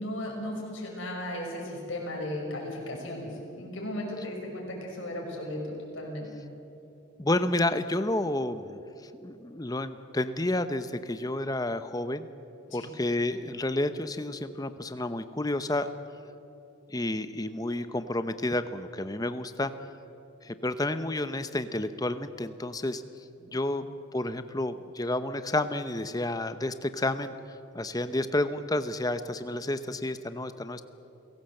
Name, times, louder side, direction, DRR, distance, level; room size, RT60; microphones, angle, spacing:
voice 1, 0.0-6.3 12.7-12.9 23.4-23.5, left 1 dB, 65° left, 0 dB, 6.0 m, -36 dB
voice 2, 7.2-12.3 12.7-15.9 16.9-19.7 20.4-23.0 23.5-23.8 24.1-30.8, left 1 dB, 15° left, 11 dB, 0.8 m, -30 dB
29.5 x 17.5 x 7.8 m, 2.8 s
head